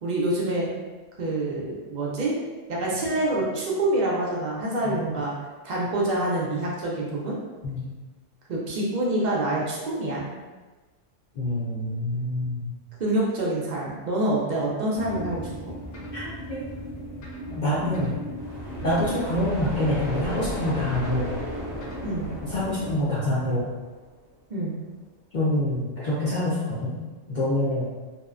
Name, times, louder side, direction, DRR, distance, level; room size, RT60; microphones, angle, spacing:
voice 1, 0.0-0.7 1.2-2.4 2.7-5.3 5.6-7.4 8.5-10.3 13.0-15.7 22.0-22.3 24.5-24.7, right 1 dB, 65° right, -4 dB, 0.4 m, -26 dB
voice 2, 11.4-12.7 16.1-16.6 17.5-18.2 18.8-21.3 22.4-23.7 25.3-26.9 27.3-27.9, left 1 dB, 55° left, -9 dB, 0.5 m, -26 dB
sound 1, 14.9-23.0, left 1 dB, 75° left, 0.9 m, -38 dB
sound 2, 18.3-24.1, equal, 5° right, 0.6 m, -35 dB
2.7 x 2.1 x 2.4 m, 1.3 s
omnidirectional pair, 1.3 m